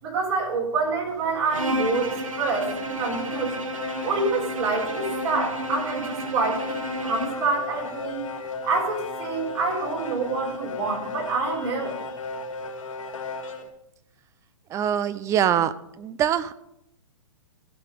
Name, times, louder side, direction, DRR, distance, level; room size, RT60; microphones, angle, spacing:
voice 1, 0.0-3.6 4.0-8.2 8.6-12.0, right 4 dB, 55° right, 0 dB, 3.7 m, -27 dB
sound 1, 1.1-13.7, left 4 dB, 80° left, 1.8 m, -36 dB
Bowed string instrument, 1.5-7.5, right 1 dB, 85° right, 1.2 m, -32 dB
voice 2, 14.7-16.5, right 9 dB, 20° right, 16 dB, 0.4 m, -24 dB
15.5 x 5.8 x 5.1 m, 0.79 s
hypercardioid pair, 125°, 17 cm